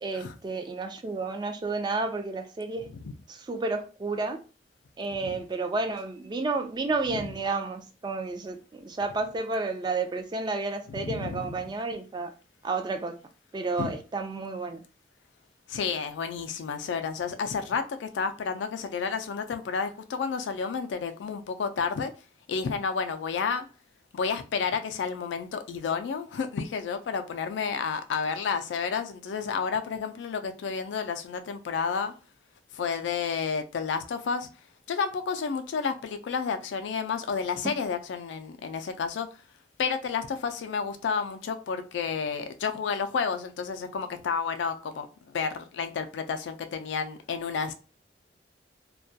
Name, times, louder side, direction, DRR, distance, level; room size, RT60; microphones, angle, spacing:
voice 1, 0.0-2.9 3.5-4.4 5.0-12.3 12.6-13.2 13.5-14.8, right 3 dB, 25° right, 0.3 m, -31 dB
voice 2, 10.9-11.6 13.8-14.0 15.7-22.1 22.5-23.7 24.1-32.1 32.7-34.5 34.9-39.3 39.8-47.7, left 5 dB, 85° left, 0.3 m, -31 dB
2.2 x 2.2 x 2.6 m
head